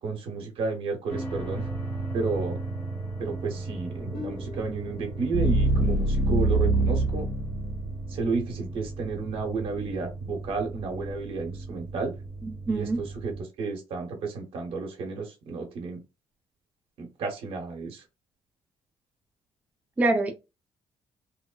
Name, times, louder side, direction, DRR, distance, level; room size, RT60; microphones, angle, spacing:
voice 1, 0.0-1.7 2.1-2.6 3.2-7.3 8.1-12.1 12.7-16.0 17.0-18.0, right 4 dB, 65° right, 1.0 m, -32 dB
sound 1, 1.1-13.4, right 2 dB, 25° left, 1.4 m, -36 dB
sound 2, 4.1-8.2, right 2 dB, 60° left, 1.6 m, -25 dB
voice 2, 12.4-13.0 20.0-20.3, right 2 dB, 15° right, 0.4 m, -25 dB
3.1 x 2.0 x 2.3 m
cardioid pair, 140°, 10 cm